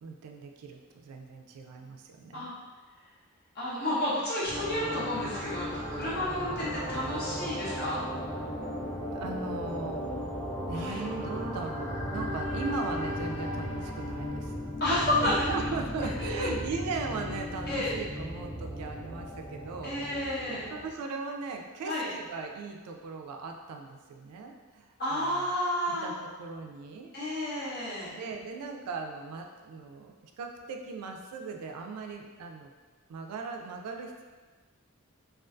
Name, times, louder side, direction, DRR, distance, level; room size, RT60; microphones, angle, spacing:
voice 1, 0.0-2.5 9.1-10.0 10.7-14.5 15.2-25.5 25.9-27.1 28.1-32.7 33.1-34.2, right 4 dB, 90° right, 4 dB, 0.3 m, -38 dB
voice 2, 3.5-8.0 10.7-11.0 14.8-15.5 16.4-16.5 17.7-17.9 19.8-20.7 21.8-22.1 25.0-26.2 27.1-28.1, left 1 dB, 45° left, -9 dB, 0.6 m, -31 dB
sound 1, 4.4-20.9, left 1 dB, 5° right, 0.6 m, -36 dB
2.5 x 2.3 x 2.2 m, 1.3 s
head